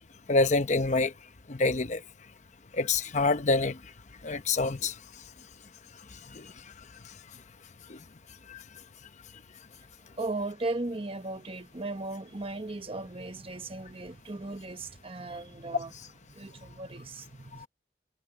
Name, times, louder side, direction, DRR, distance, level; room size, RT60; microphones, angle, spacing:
voice 1, 0.3-1.1 1.5-2.0 2.7-3.8 4.2-4.9 6.4-6.5 7.9-8.0 8.5-8.6, left 3 dB, 40° left, 0.9 m, -26 dB
voice 2, 10.2-15.9 16.4-17.7, right 2 dB, 30° right, 1.1 m, -37 dB
head